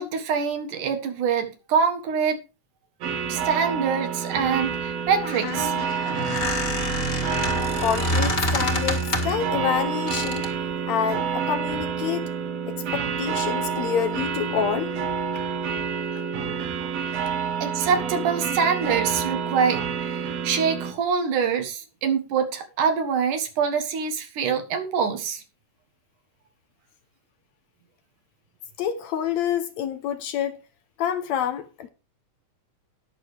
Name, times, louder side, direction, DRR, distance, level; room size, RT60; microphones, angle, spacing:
voice 1, 0.0-2.4 3.3-5.8 16.4-17.0 17.6-25.4, right 6 dB, 85° right, 3.1 m, -25 dB
sound 1, 3.0-20.9, right 6 dB, 65° right, 2.1 m, -28 dB
Squeak, 5.1-9.5 10.1-10.6, left 1 dB, 25° left, 1.4 m, -27 dB
voice 2, 7.8-10.4 10.9-12.3 12.7-14.9 16.1-16.2 28.8-30.6 31.0-31.9, left 8 dB, 75° left, 1.9 m, -27 dB
19.5 x 6.7 x 3.3 m
omnidirectional pair, 3.5 m